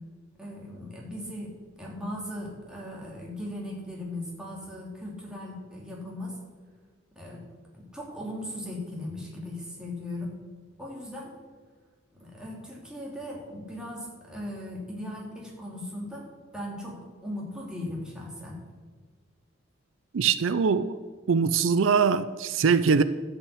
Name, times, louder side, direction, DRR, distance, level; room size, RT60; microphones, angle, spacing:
voice 1, 0.4-6.4 7.1-7.4 7.7-10.4 10.8-11.4 12.2-18.6, left 1 dB, 5° right, -4 dB, 2.8 m, -38 dB
voice 2, 20.1-21.0 21.3-23.0, right 5 dB, 75° right, 14 dB, 0.5 m, -22 dB
13.0 x 5.8 x 8.4 m, 1.5 s
head